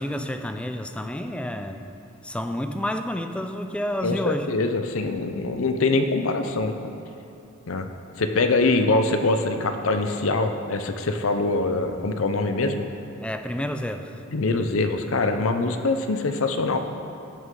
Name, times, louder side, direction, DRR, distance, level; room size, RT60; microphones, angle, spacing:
voice 1, 0.0-1.8 2.2-4.5 13.2-14.1, left 1 dB, 5° left, 7 dB, 0.4 m, -29 dB
voice 2, 4.0-6.9 7.7-7.9 8.2-12.9 14.3-16.8, left 3 dB, 70° left, 7 dB, 0.6 m, -24 dB
14.5 x 6.2 x 3.8 m, 2.7 s
head